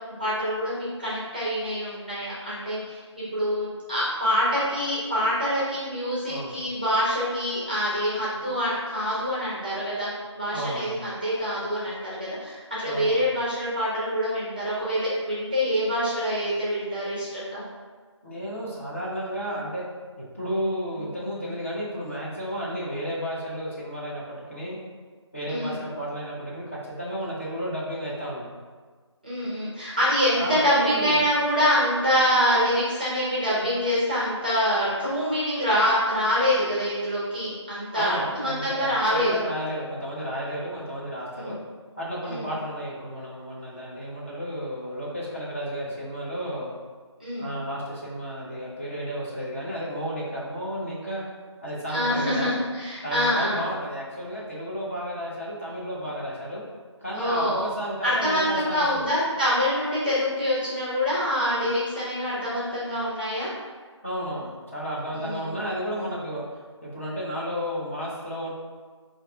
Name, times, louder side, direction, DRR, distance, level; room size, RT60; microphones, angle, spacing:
voice 1, 0.2-10.1 10.4-17.6 21.0-21.1 25.5-25.8 29.2-39.3 41.3-41.6 42.2-42.4 47.2-47.5 51.9-53.6 57.1-57.7 58.0-63.5 65.1-65.6, equal, 20° right, -8 dB, 0.6 m, -25 dB
voice 2, 10.5-11.0 12.8-13.2 18.2-19.8 20.2-24.8 25.3-28.5 30.4-31.2 37.9-41.6 42.0-46.7 47.4-51.2 51.6-52.5 53.0-56.6 57.0-59.1 64.0-66.4 66.8-68.5, equal, 25° left, -7 dB, 0.7 m, -32 dB
4.0 x 2.4 x 3.3 m, 1.5 s
figure-of-eight pair, 170°, 16 cm